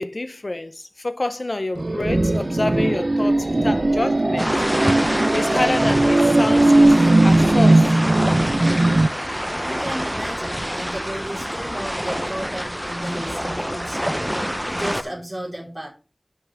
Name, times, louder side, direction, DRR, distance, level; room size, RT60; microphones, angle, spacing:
voice 1, 0.0-4.5 5.3-8.0, left 2 dB, 80° left, 0.5 m, -27 dB
sound 1, 1.8-9.1, right 2 dB, 70° right, 0.4 m, -18 dB
sound 2, 4.4-15.0, equal, 5° right, 0.5 m, -26 dB
voice 2, 9.6-15.9, right 1 dB, 50° right, 4.2 m, -33 dB
10.5 x 5.7 x 3.4 m
wide cardioid pair, 40°, 0 cm